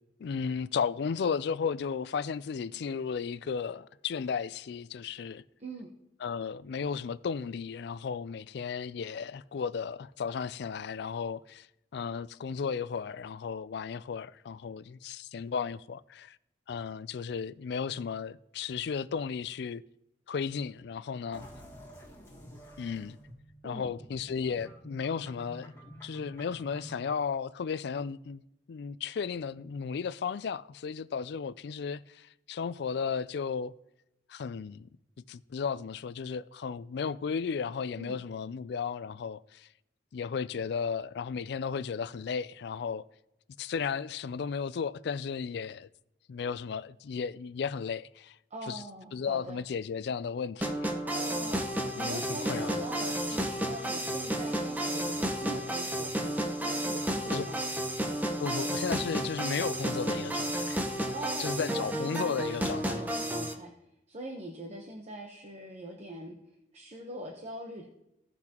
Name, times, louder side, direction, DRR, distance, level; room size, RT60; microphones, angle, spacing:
voice 1, 0.2-5.4 6.2-11.7 11.9-16.4 16.7-19.8 20.3-21.5 22.8-23.2 23.6-25.7 26.0-28.4 28.7-33.7 34.3-34.9 35.3-39.7 40.1-43.0 43.6-45.9 46.3-48.4 48.7-48.8 49.1-50.9 52.0-52.9 57.3-57.5 58.4-60.8 61.4-63.0, left 6 dB, 65° left, 0.4 m, -34 dB
sound 1, 21.3-27.1, equal, 15° left, 1.8 m, -50 dB
voice 2, 48.5-49.6 51.1-51.6 52.0-57.8 61.1-63.7 64.1-66.4 66.7-67.8, right 1 dB, 40° right, 1.0 m, -42 dB
sound 2, 50.6-63.5, right 1 dB, 10° right, 0.8 m, -32 dB
16.5 x 6.0 x 2.9 m
head